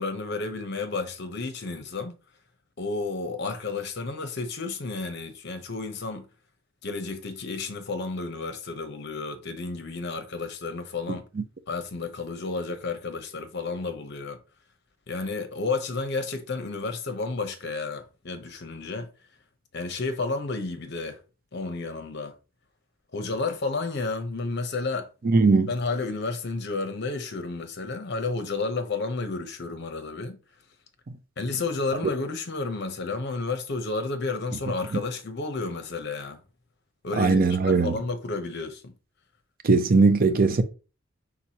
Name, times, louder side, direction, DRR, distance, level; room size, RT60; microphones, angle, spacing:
voice 1, 0.0-2.2 2.8-6.2 6.8-11.3 11.7-14.4 15.1-19.1 19.7-21.2 21.5-22.3 23.1-25.1 25.7-30.4 31.4-36.4 37.0-38.9, left 3 dB, 55° left, 0.8 m, -31 dB
voice 2, 25.2-25.7 34.9-35.0 37.2-38.0 39.6-40.6, right 4 dB, 45° right, 0.5 m, -20 dB
4.6 x 3.9 x 2.8 m
head